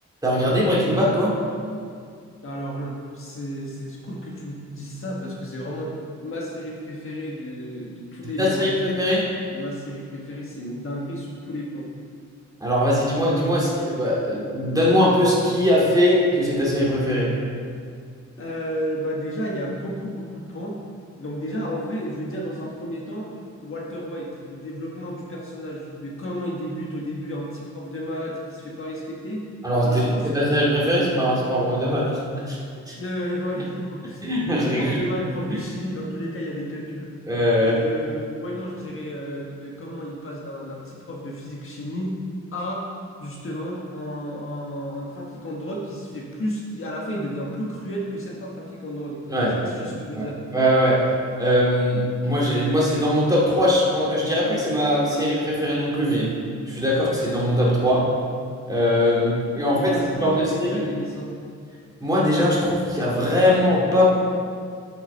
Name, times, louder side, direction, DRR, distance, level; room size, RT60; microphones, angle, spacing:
voice 1, 0.2-1.4 8.4-9.2 12.6-17.3 29.6-32.6 32.9-33.0 34.2-35.0 37.3-37.8 49.3-49.5 50.1-50.3 50.5-51.0 51.4-56.3 56.7-58.1 58.7-60.8 62.0-64.1, equal, 10° right, -6 dB, 2.4 m, -21 dB
voice 2, 2.4-8.7 9.5-11.9 18.4-20.8 21.2-23.3 23.6-29.5 29.8-30.3 33.0-34.3 34.5-37.1 37.6-42.2 42.5-42.9 43.2-49.2 49.6-50.4 59.6-61.3, equal, 45° left, -3 dB, 1.4 m, -32 dB
11.0 x 5.9 x 4.4 m, 2.2 s
wide cardioid pair, 125°, 29 cm